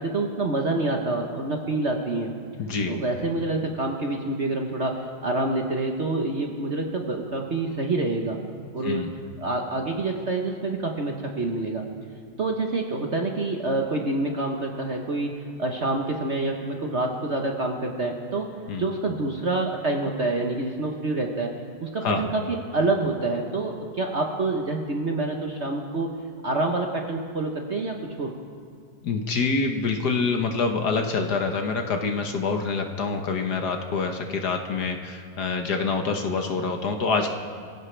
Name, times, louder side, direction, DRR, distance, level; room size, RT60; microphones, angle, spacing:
voice 1, 0.0-2.3 2.9-8.4 8.7-9.1 9.4-11.8 12.4-18.5 18.8-21.5 21.8-26.2 26.4-28.3, right 2 dB, 40° right, 2 dB, 1.1 m, -27 dB
voice 2, 2.6-2.9 8.8-9.1 18.7-18.8 22.0-22.3 29.0-37.3, left 4 dB, 60° left, 4 dB, 1.5 m, -26 dB
25.0 x 16.0 x 3.3 m, 2.3 s
omnidirectional pair, 2.2 m